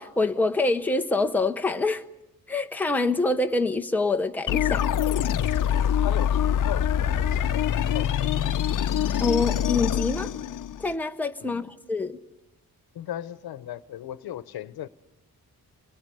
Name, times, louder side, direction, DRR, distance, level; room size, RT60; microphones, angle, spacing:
voice 1, 0.0-2.0 2.5-4.8 9.2-10.3 10.8-12.2, left 3 dB, 5° left, 0.8 m, -26 dB
sound 1, 4.5-10.9, left 9 dB, 60° left, 0.8 m, -24 dB
voice 2, 6.0-8.4 11.4-11.6 12.9-14.9, left 12 dB, 85° left, 1.0 m, -37 dB
29.0 x 20.0 x 6.8 m
wide cardioid pair, 165°, 36 cm